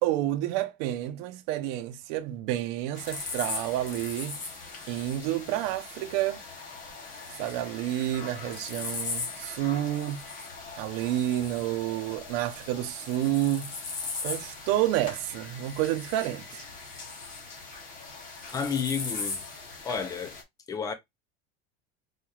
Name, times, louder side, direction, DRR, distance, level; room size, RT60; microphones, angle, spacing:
voice 1, 0.0-4.4 4.9-6.4 7.4-10.3 10.8-13.7 14.2-16.6, right 13 dB, 70° right, 0.7 m, -29 dB
sound 1, 2.9-20.4, left 4 dB, 30° left, 0.9 m, -39 dB
voice 2, 18.5-19.4 19.8-20.4 20.7-20.9, left 6 dB, 10° left, 0.4 m, -31 dB
4.1 x 3.2 x 2.4 m
cardioid pair, 170°, 30 cm